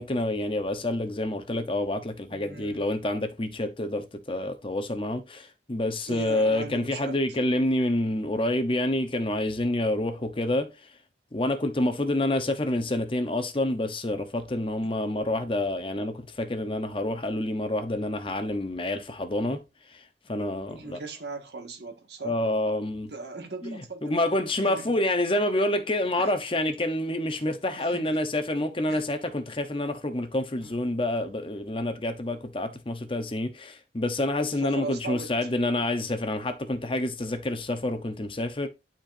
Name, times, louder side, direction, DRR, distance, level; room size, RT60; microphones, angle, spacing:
voice 1, 0.0-10.7 11.3-19.6 19.9-20.0 20.3-21.0 22.2-23.1 23.6-38.7, left 1 dB, 30° left, 0.9 m, -28 dB
voice 2, 2.3-2.8 6.1-7.2 14.8-14.9 20.7-22.4 23.1-24.2 24.6-25.0 26.2-26.3 27.7-28.2 28.9-29.0 30.6-30.8 34.5-35.5, right 3 dB, 65° right, 1.7 m, -38 dB
12.0 x 4.4 x 2.6 m
head